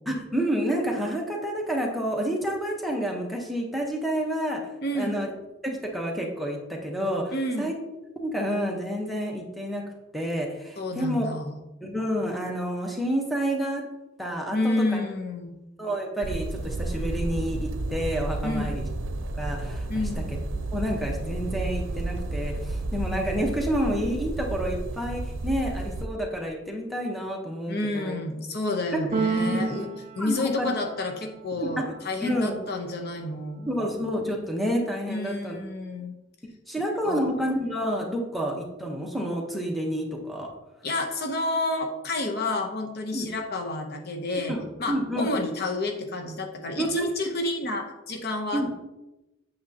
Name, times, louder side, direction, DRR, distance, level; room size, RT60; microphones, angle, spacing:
voice 1, 0.1-4.6 4.9-5.3 5.6-7.7 8.2-9.8 10.1-11.3 11.8-13.8 14.2-15.0 15.8-18.8 19.3-19.9 20.3-20.4 20.7-28.1 28.9-29.0 29.3-29.6 30.2-30.7 31.6-31.9 32.2-32.5 33.7-35.6 36.7-40.5 43.1-43.3 44.5-45.3 46.8-47.0 48.5-48.7, equal, ahead, 0 dB, 1.0 m, -29 dB
voice 2, 4.8-5.2 7.3-7.7 10.8-11.6 14.5-15.6 18.4-18.7 19.9-20.3 27.7-29.9 30.2-33.7 35.1-36.1 37.0-37.3 40.8-48.7, left 2 dB, 55° left, 4 dB, 0.9 m, -30 dB
sound 1, 16.2-26.1, right 2 dB, 80° right, 0.6 m, -31 dB
Keyboard (musical), 29.1-31.2, right 5 dB, 35° right, 0.3 m, -31 dB
8.6 x 6.4 x 2.8 m, 0.99 s
head